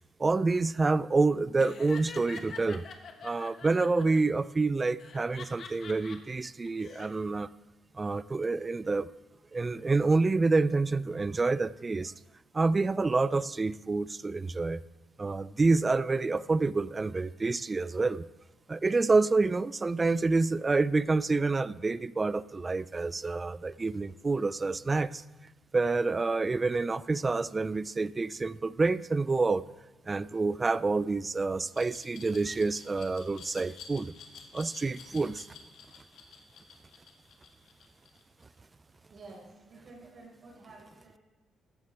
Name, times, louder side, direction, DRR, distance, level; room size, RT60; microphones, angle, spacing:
voice 1, 0.2-2.8 3.2-7.5 8.0-9.1 9.5-12.1 12.5-14.8 15.2-18.2 18.7-25.2 25.7-29.6 30.1-34.1 34.5-35.5, right 3 dB, 25° right, 18 dB, 0.4 m, -28 dB
Laughter, 1.6-4.2 5.0-6.2 6.6-7.1, left 5 dB, 55° left, 1.4 m, -45 dB
Glass, 31.7-38.6, left 6 dB, 80° left, 1.8 m, -50 dB
voice 2, 39.1-41.2, right 3 dB, 50° right, -2 dB, 5.0 m, -51 dB
15.0 x 11.5 x 3.4 m, 1.1 s
cardioid pair, 90°, 0 cm